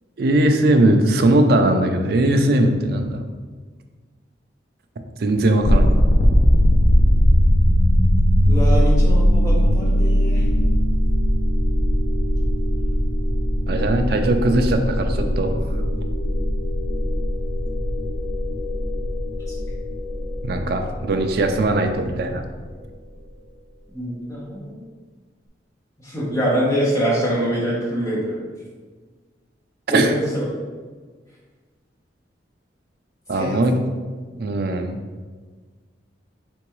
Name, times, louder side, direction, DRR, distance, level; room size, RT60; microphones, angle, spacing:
voice 1, 0.2-3.2 5.2-5.9 13.7-15.6 20.4-22.4 29.9-30.1 33.3-33.7 34.4-35.0, right 1 dB, 55° right, 5 dB, 0.4 m, -19 dB
sound 1, 5.6-22.5, equal, 55° left, 0.5 m, -19 dB
voice 2, 8.5-10.4 19.5-19.6 23.9-24.8 26.0-28.4 29.9-30.5 33.3-33.6, right 1 dB, 15° left, -7 dB, 1.1 m, -24 dB
3.8 x 3.5 x 3.1 m, 1.5 s
head